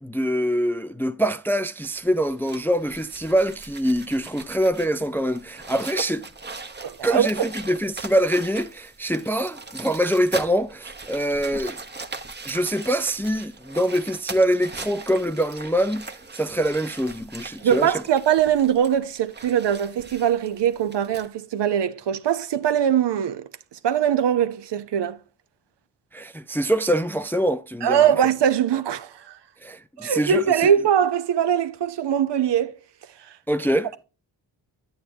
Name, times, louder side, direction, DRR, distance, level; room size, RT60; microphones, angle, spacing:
voice 1, 0.0-6.2 7.0-11.8 12.4-17.9 26.1-28.2 29.6-30.7 33.5-33.9, equal, 5° left, 0.4 m, -24 dB
sound 1, 1.8-21.3, right 3 dB, 20° right, 1.0 m, -40 dB
voice 2, 6.8-7.3 17.6-23.5 23.8-25.2 27.8-29.4 30.0-32.8, right 9 dB, 60° right, 0.8 m, -21 dB
9.1 x 7.9 x 2.7 m
cardioid pair, 60°, 47 cm